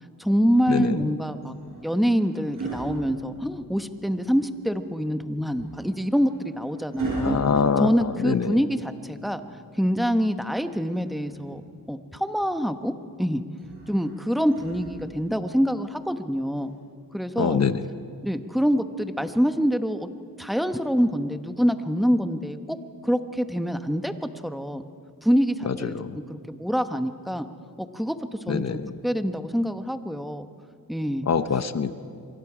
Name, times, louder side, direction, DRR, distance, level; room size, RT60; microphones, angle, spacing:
voice 1, 0.2-1.5 1.8-7.4 7.8-9.4 9.7-11.6 11.9-13.4 13.9-16.7 17.1-17.6 18.2-20.1 20.4-22.8 23.0-24.8 25.2-26.0 26.3-27.5 27.8-28.2 28.5-30.5 30.9-31.3, equal, ahead, 9 dB, 1.0 m, -25 dB
sound 1, 1.4-3.9 5.5-8.7 10.4-11.6 13.6-15.4 16.6-16.8, right 3 dB, 65° right, 7.7 m, -37 dB
voice 2, 7.2-7.9 8.2-8.6 17.4-17.8 25.7-26.1 28.5-28.9 31.3-31.9, left 6 dB, 50° left, 11 dB, 0.9 m, -24 dB
27.5 x 24.0 x 5.0 m, 2.4 s
wide cardioid pair, 95°, 35 cm